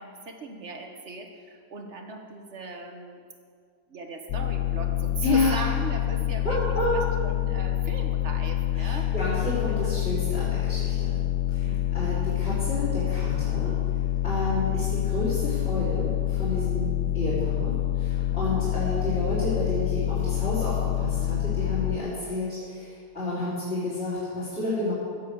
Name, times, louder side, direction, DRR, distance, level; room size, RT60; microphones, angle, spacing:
voice 1, 0.0-3.2 3.9-6.6 6.9-9.1 9.7-10.1 11.6-12.2 18.3-18.8, right 3 dB, 45° right, 4 dB, 1.5 m, -38 dB
sound 1, 4.3-22.0, left 13 dB, 65° left, 0.9 m, -27 dB
voice 2, 5.2-5.6 6.4-7.0 8.8-11.2 11.5-13.7 14.2-24.9, left 2 dB, 40° left, -11 dB, 4.7 m, -30 dB
17.0 x 7.6 x 7.0 m, 2.1 s
omnidirectional pair, 1.8 m